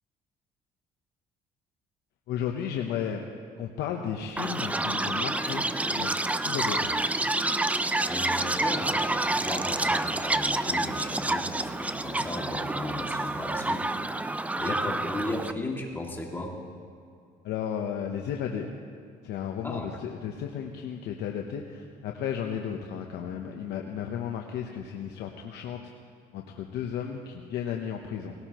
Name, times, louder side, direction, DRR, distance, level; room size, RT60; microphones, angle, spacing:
voice 1, 2.3-3.2 3.6-6.1 6.4-7.0 14.6-14.7 17.4-18.7 19.2-25.9 26.3-28.3, left 8 dB, 80° left, 2 dB, 0.9 m, -34 dB
Chirp tweet, 4.4-15.5, right 2 dB, 10° right, 0.4 m, -28 dB
voice 2, 8.1-16.5 19.6-20.0, left 1 dB, 10° left, -1 dB, 2.3 m, -36 dB
19.5 x 17.5 x 3.0 m, 2.3 s
cardioid pair, 110°, 17 cm